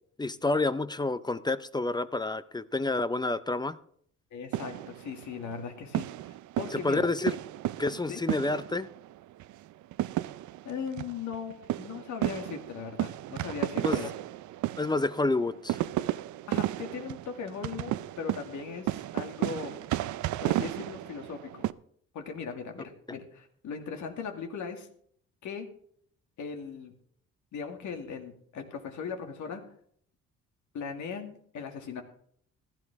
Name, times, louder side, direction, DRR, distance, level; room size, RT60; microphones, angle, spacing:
voice 1, 0.2-3.8 6.7-7.4 7.8-8.9 13.8-14.1 14.8-15.8, left 2 dB, 15° left, 15 dB, 0.5 m, -29 dB
voice 2, 4.3-7.0 8.1-8.2 10.6-14.1 16.5-19.8 20.4-21.6 22.1-24.9 25.4-25.7 26.4-26.9 27.5-29.6 30.7-32.0, left 6 dB, 75° left, 5 dB, 2.3 m, -38 dB
sound 1, 4.5-5.6 5.9-9.1 9.4-9.5 9.9-21.7, right 14 dB, 75° right, 0.5 m, -33 dB
15.5 x 12.0 x 3.5 m, 0.62 s
cardioid pair, 90°, 30 cm